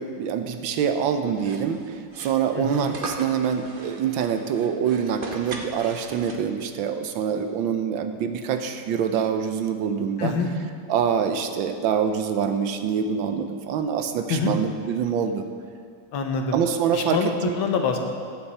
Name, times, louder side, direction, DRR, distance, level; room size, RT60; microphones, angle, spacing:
voice 1, 0.0-10.3 10.9-15.4 16.5-17.5, right 7 dB, 80° right, 8 dB, 1.5 m, -25 dB
sound 1, 1.3-6.7, right 3 dB, 45° right, 0.7 m, -39 dB
voice 2, 2.5-2.9 10.2-10.5 14.3-14.6 16.1-16.6 16.9-18.0, left 5 dB, 85° left, 3 dB, 1.9 m, -25 dB
15.0 x 9.1 x 4.2 m, 2.2 s
omnidirectional pair, 2.1 m